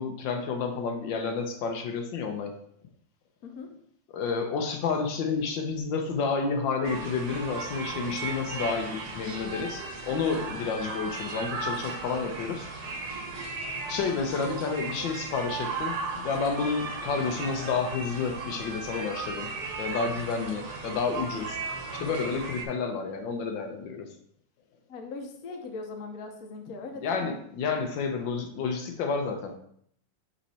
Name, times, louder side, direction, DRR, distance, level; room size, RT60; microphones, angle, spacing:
voice 1, 0.0-2.6 4.1-12.7 13.9-19.5 19.8-21.6 21.9-24.1 27.0-29.6, left 5 dB, 80° left, 4 dB, 1.4 m, -30 dB
sound 1, 6.8-22.6, right 4 dB, 60° right, 1.4 m, -36 dB
voice 2, 24.9-27.4, left 3 dB, 60° left, 4 dB, 1.2 m, -40 dB
5.5 x 4.3 x 4.2 m, 0.66 s
omnidirectional pair, 2.0 m